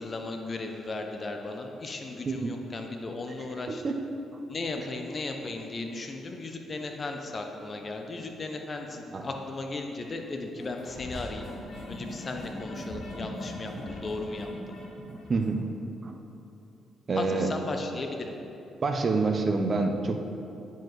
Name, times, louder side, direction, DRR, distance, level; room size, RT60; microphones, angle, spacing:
voice 1, 0.0-3.8 4.5-11.5 11.9-14.5 17.2-18.4, left 3 dB, 35° left, 3 dB, 0.5 m, -36 dB
sound 1, 10.6-15.5, left 1 dB, 60° left, 1.2 m, -40 dB
voice 2, 15.3-15.6 16.0-16.2 17.1-17.5 18.8-20.2, right 3 dB, 40° right, 5 dB, 0.6 m, -27 dB
9.4 x 4.6 x 3.1 m, 2.8 s
cardioid pair, 90°, 0 cm